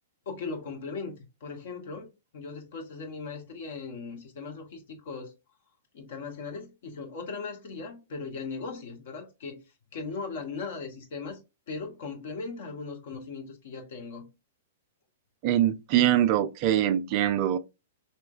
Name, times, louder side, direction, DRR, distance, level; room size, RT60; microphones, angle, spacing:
voice 1, 0.2-2.1 2.3-5.3 5.9-9.6 9.9-11.4 11.7-14.3, left 4 dB, 55° left, 1.2 m, -38 dB
voice 2, 15.4-17.6, right 11 dB, 40° right, 0.4 m, -23 dB
4.2 x 3.1 x 2.5 m
figure-of-eight pair, 105°, 0 cm